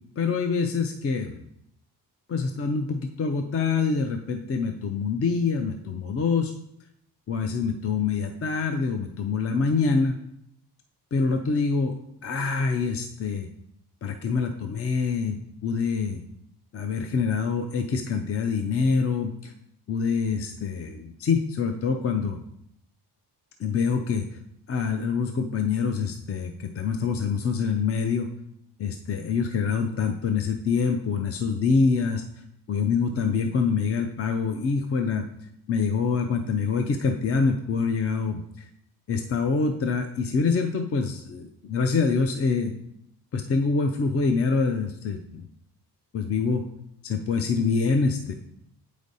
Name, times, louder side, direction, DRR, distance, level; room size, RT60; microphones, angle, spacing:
voice 1, 0.2-1.4 2.3-6.5 7.3-10.2 11.1-12.0 12.2-13.5 14.0-16.2 16.7-19.5 19.9-22.4 23.6-24.2 24.7-28.3 28.8-32.2 32.7-35.2 35.7-38.4 39.1-42.7 43.3-45.5 46.1-46.6 47.0-48.3, left 5 dB, 35° left, 5 dB, 0.5 m, -25 dB
8.2 x 5.0 x 4.0 m, 0.76 s
wide cardioid pair, 150°, 40 cm